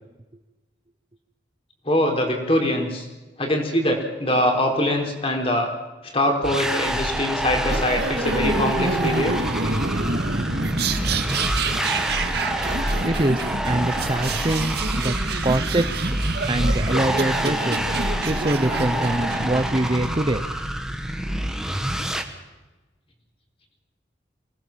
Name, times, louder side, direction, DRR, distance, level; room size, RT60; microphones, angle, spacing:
voice 1, 1.9-3.1 3.4-5.7 6.1-9.4, left 1 dB, 30° left, 2 dB, 4.4 m, -23 dB
sound 1, 6.4-22.2, equal, 5° right, 1.7 m, -27 dB
sound 2, 7.7-20.4, right 3 dB, 60° right, 2.0 m, -27 dB
voice 2, 13.0-15.1 15.4-16.1 16.4-20.5, right 1 dB, 30° right, 10 dB, 0.9 m, -24 dB
24.5 x 18.5 x 7.4 m, 1.1 s
head